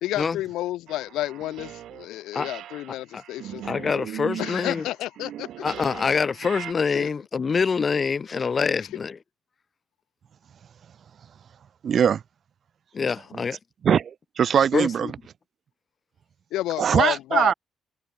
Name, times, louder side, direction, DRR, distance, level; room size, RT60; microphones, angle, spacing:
voice 1, 0.0-3.6 4.4-5.6 6.9-7.1 16.5-17.5, left 15 dB, 90° left, 1.3 m, -30 dB
sound 1, 0.9-2.1 2.3-6.7, right 12 dB, 75° right, 2.5 m, -39 dB
voice 2, 3.6-4.8 5.6-9.2 12.9-13.6 14.7-15.1 16.9-17.0, left 5 dB, 40° left, 1.1 m, -25 dB
voice 3, 11.8-12.2 13.8-14.1 14.4-15.1 16.8-17.5, right 8 dB, 55° right, 1.3 m, -20 dB
cardioid pair, 90°, 0 cm